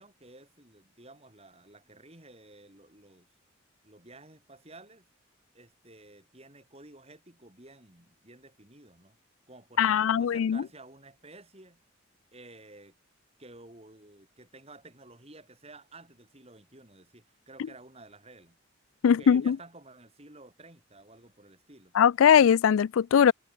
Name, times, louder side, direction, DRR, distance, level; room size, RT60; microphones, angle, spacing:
voice 1, 0.0-3.3 3.8-5.1 5.5-9.2 9.5-11.8 12.3-13.0 13.4-18.6 19.0-21.9, right 2 dB, 30° right, 6.0 m, -52 dB
voice 2, 9.8-10.6 19.0-19.6 21.9-23.3, left 8 dB, 75° left, 0.3 m, -21 dB
head